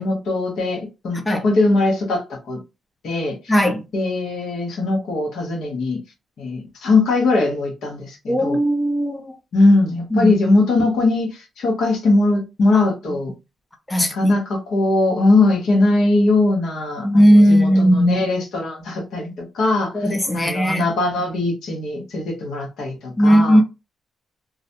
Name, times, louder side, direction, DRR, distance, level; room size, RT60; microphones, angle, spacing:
voice 1, 0.0-2.6 3.0-3.6 3.9-6.0 6.4-8.6 9.5-13.3 14.0-23.6, left 2 dB, 75° left, 1.0 m, -20 dB
voice 2, 3.5-3.8 8.3-9.2 10.1-10.3 13.9-14.3 17.0-18.2 19.9-20.8 23.2-23.6, equal, 15° left, 0.6 m, -16 dB
2.5 x 2.1 x 2.7 m
supercardioid pair, 65°, 0 cm